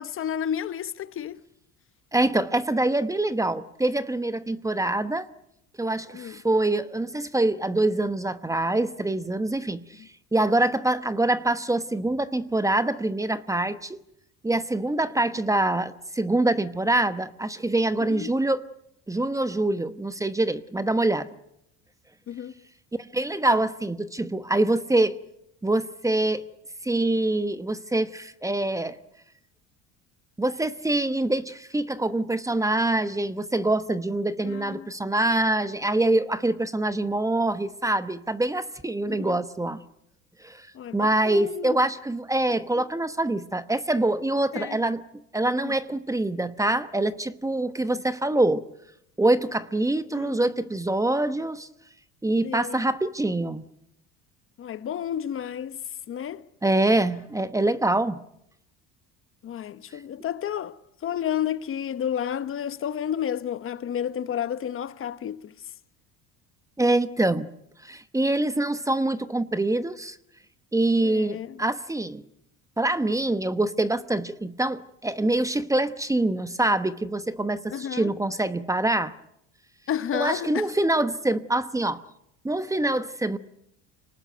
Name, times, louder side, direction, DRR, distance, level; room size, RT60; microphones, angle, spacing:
voice 1, 0.0-1.4 6.1-6.4 10.0-10.1 15.3-15.4 18.1-18.3 22.3-22.5 23.5-23.6 34.4-34.9 39.1-39.4 40.7-41.8 42.7-42.8 44.5-44.8 45.6-45.7 47.9-48.0 50.1-50.4 52.4-52.8 54.6-55.8 56.1-56.5 59.4-65.7 71.0-71.6 77.7-78.1 79.9-80.7, left 9 dB, 40° left, 1.1 m, -31 dB
voice 2, 2.1-5.3 5.8-10.0 10.3-14.0 14.4-18.6 19.1-21.3 23.1-25.1 25.6-26.4 26.8-29.0 30.4-39.8 40.4-40.7 40.9-45.0 45.3-48.6 49.2-51.7 52.2-53.7 56.6-58.2 66.8-67.5 67.8-70.2 70.7-72.2 72.8-79.1 80.1-82.0 82.4-83.4, right 2 dB, 10° right, 1.0 m, -25 dB
25.5 x 19.0 x 9.2 m
supercardioid pair, 105°, 33 cm